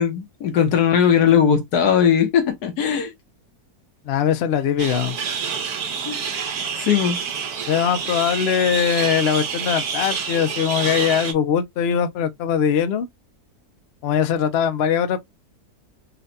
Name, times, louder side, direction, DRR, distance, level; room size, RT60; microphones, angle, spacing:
voice 1, 0.0-3.1 6.1-6.2 6.8-7.2, left 8 dB, 80° left, 1.4 m, -18 dB
voice 2, 4.0-5.2 7.7-13.1 14.0-15.2, left 8 dB, 60° left, 0.6 m, -21 dB
sound 1, 4.8-11.3, right 6 dB, 75° right, 1.3 m, -28 dB
3.9 x 2.2 x 2.6 m
omnidirectional pair, 1.7 m